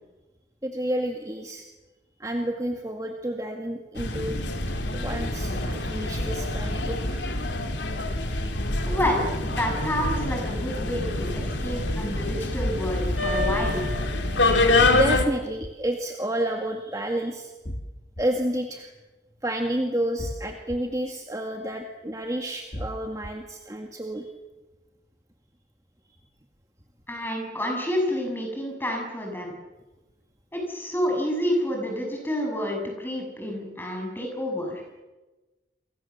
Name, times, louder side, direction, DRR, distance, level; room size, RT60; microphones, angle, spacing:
voice 1, 0.6-1.6 2.2-4.4 4.9-7.2 14.9-17.5 18.2-18.9 19.4-24.3, right 1 dB, 20° right, 3 dB, 1.9 m, -30 dB
sound 1, 4.0-15.2, left 2 dB, 90° left, 3.1 m, -26 dB
voice 2, 8.9-13.8 27.1-29.5 30.5-34.8, equal, 10° left, 1 dB, 7.2 m, -29 dB
sound 2, 10.0-10.6 12.6-13.2 15.1-15.7 17.6-18.2 20.2-20.8 22.7-23.3, equal, 45° left, 2.2 m, -34 dB
29.0 x 23.5 x 7.3 m, 1.2 s
head